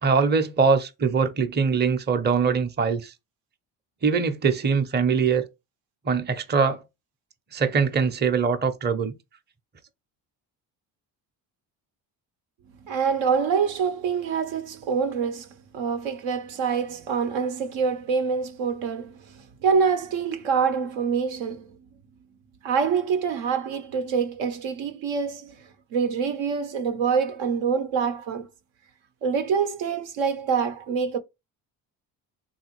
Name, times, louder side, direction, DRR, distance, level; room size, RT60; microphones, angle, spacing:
voice 1, 0.0-3.1 4.0-5.5 6.1-6.8 7.5-9.1, right 5 dB, 20° right, 0.6 m, -22 dB
voice 2, 12.8-15.5 15.7-21.7 22.6-28.5 29.2-31.2, right 6 dB, 75° right, 0.7 m, -26 dB
3.4 x 2.4 x 3.0 m
supercardioid pair, 60°, 48 cm